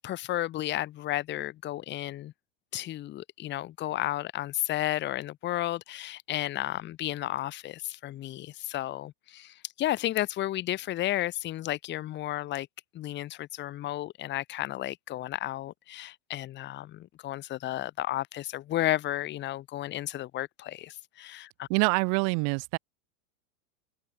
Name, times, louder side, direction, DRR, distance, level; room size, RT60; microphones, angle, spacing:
voice 1, 0.0-2.3 2.7-12.7 12.9-21.7, left 14 dB, 25° left, 1.7 m, -33 dB
voice 2, 21.7-22.8, right 40 dB or more, 45° right, 2.9 m, -25 dB
supercardioid pair, 150°, 40 cm